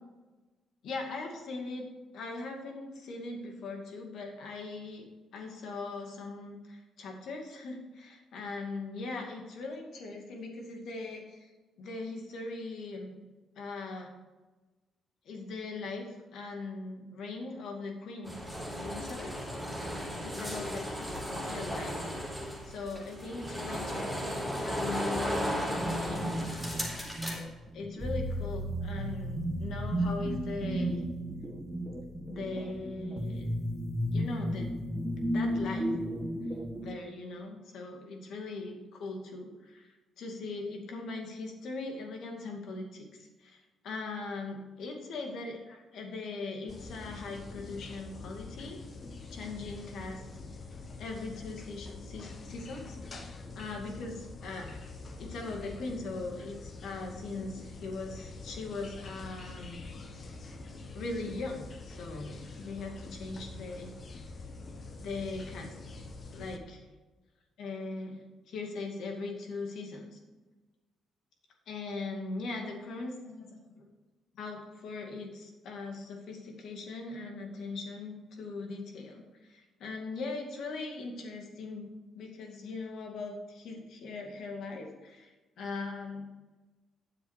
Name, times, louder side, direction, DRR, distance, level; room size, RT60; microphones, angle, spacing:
voice 1, 0.8-1.9 2.1-5.1 5.3-11.5 11.8-13.2 13.6-14.1 15.3-19.4 20.2-21.1 21.4-22.1 22.6-27.3 27.7-31.0 32.3-33.5 34.1-34.8 35.3-35.9 36.8-48.8 49.3-50.2 51.0-53.3 53.6-54.8 55.2-59.8 60.9-63.9 65.0-65.8 66.3-66.8 67.6-70.2 71.7-73.9 74.3-79.2 79.5-81.9 82.1-86.3, left 3 dB, 75° left, 2 dB, 2.2 m, -40 dB
sound 1, 18.2-27.4, equal, 5° left, 3.7 m, -35 dB
sound 2, 25.9-36.9, equal, 25° right, 1.6 m, -34 dB
sound 3, 46.7-66.6, left 3 dB, 45° left, 1.3 m, -45 dB
9.8 x 7.4 x 4.9 m, 1.2 s
cardioid pair, 90°, 0 cm